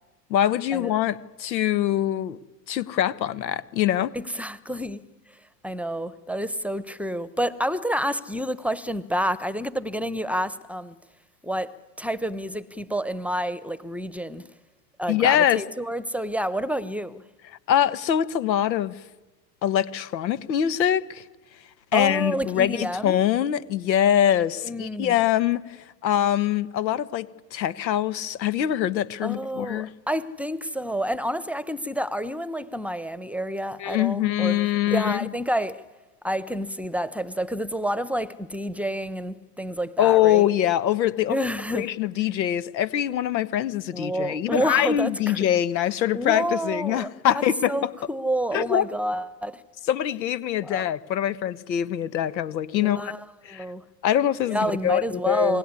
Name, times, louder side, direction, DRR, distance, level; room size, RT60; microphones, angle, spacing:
voice 1, 0.3-2.4 2.7-4.1 15.1-15.6 17.7-18.9 19.6-21.2 21.9-29.9 33.8-35.3 40.0-41.5 41.7-47.9 48.5-48.9 49.9-53.1 53.4-53.6 54.0-55.6, left 11 dB, 85° left, 1.4 m, -23 dB
voice 2, 4.1-5.0 5.6-11.0 11.4-14.5 15.0-17.2 21.9-23.2 24.6-25.2 29.2-34.6 34.9-35.8 36.2-40.5 41.3-41.9 43.9-45.5 46.1-47.1 47.7-49.6 50.6-50.8 52.8-53.8 54.5-55.6, right 1 dB, 5° right, 1.1 m, -29 dB
28.0 x 20.5 x 9.8 m
hypercardioid pair, 95°, 50 cm